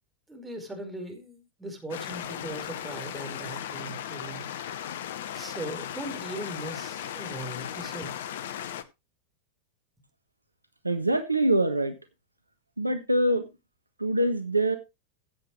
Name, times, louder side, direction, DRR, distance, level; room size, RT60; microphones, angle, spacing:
voice 1, 0.3-4.4 5.3-8.1, right 1 dB, 10° right, 4.8 m, -39 dB
sound 1, 1.9-8.8, left 10 dB, 55° left, 1.0 m, -37 dB
voice 2, 10.8-11.9 12.8-13.4 14.0-14.8, right 1 dB, 85° right, 1.3 m, -24 dB
16.0 x 8.1 x 3.2 m
figure-of-eight pair, 90°, 0 cm